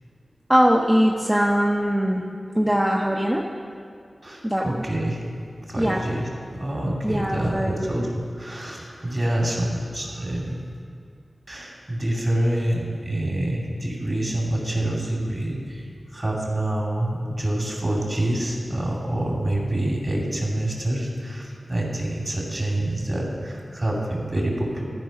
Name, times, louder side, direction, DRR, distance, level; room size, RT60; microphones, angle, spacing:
voice 1, 0.5-2.2 2.5-3.5 4.4-4.8 5.8-6.0 7.0-7.9, equal, 15° right, -2 dB, 0.8 m, -21 dB
voice 2, 4.2-5.3 5.6-10.6 11.5-24.8, right 1 dB, 40° right, -2 dB, 2.4 m, -27 dB
13.5 x 4.7 x 5.2 m, 2.3 s
cardioid pair, 40°, 0 cm